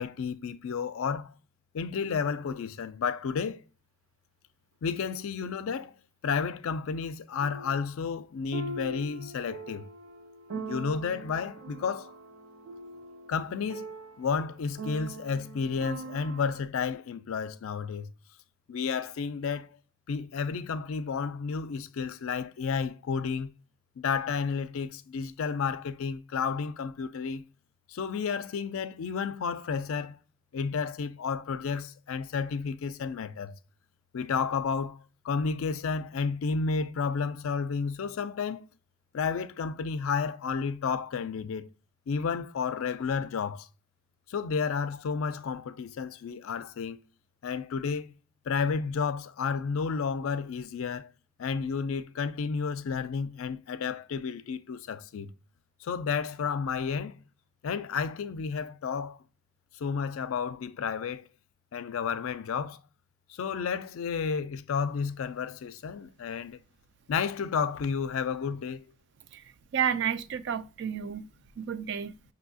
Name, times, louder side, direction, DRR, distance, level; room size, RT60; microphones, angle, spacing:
voice 1, 0.0-1.3 1.7-3.6 4.8-5.9 6.2-9.8 10.5-12.1 13.3-13.9 14.2-18.1 18.7-19.7 20.1-23.5 24.0-27.4 27.9-30.2 30.5-33.6 34.1-35.0 35.2-38.7 39.1-41.6 42.1-43.7 44.3-47.0 47.4-48.1 48.5-51.1 51.4-55.3 55.8-57.2 57.6-59.2 59.8-61.2 61.7-62.8 63.4-66.6 67.1-68.8, left 5 dB, 70° left, 0.4 m, -31 dB
sound 1, 6.3-6.4 7.4-7.7 8.5-16.6, right 3 dB, 90° right, 0.8 m, -42 dB
voice 2, 69.7-71.3 71.6-72.2, right 8 dB, 55° right, 0.3 m, -31 dB
6.2 x 2.7 x 2.6 m
head